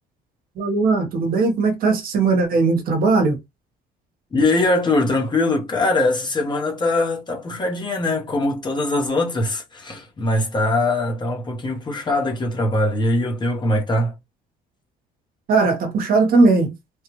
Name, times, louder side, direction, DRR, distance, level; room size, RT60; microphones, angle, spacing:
voice 1, 0.6-3.4 15.5-16.7, right 3 dB, 60° right, 1.1 m, -18 dB
voice 2, 4.3-14.2, left 2 dB, 25° left, 1.0 m, -22 dB
3.4 x 2.4 x 3.0 m
cardioid pair, 110°, 17 cm